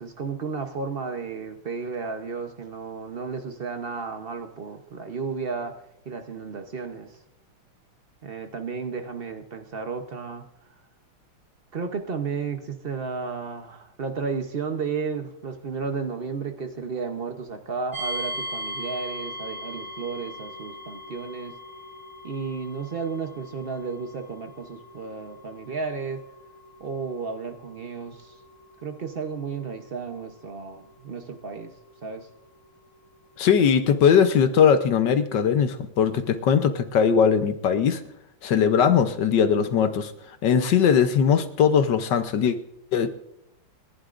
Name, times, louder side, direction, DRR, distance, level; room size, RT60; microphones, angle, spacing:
voice 1, 0.0-7.2 8.2-10.5 11.7-21.6 22.2-26.2 26.8-28.4 28.8-31.7 32.0-32.3, right 5 dB, 75° right, 6 dB, 0.5 m, -33 dB
sound 1, 17.9-32.8, equal, 40° left, 4.1 m, -40 dB
voice 2, 33.4-38.0 38.4-40.1 40.4-42.6 42.9-43.1, left 7 dB, 65° left, 9 dB, 1.3 m, -20 dB
29.0 x 11.5 x 2.5 m, 0.80 s
omnidirectional pair, 2.3 m